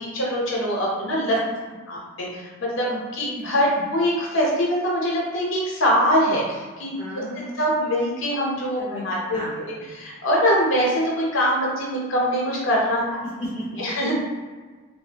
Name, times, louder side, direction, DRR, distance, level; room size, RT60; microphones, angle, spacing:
voice 1, 0.0-1.3 1.9-2.4 2.7-2.9 3.1-7.2 7.6-9.4 9.6-13.0 13.8-14.1, equal, 60° left, -3 dB, 0.8 m, -23 dB
voice 2, 2.8-3.5 6.9-7.6 8.8-9.1 9.3-9.9 13.2-13.8, equal, 40° right, -8 dB, 1.1 m, -35 dB
2.7 x 2.1 x 3.3 m, 1.4 s
head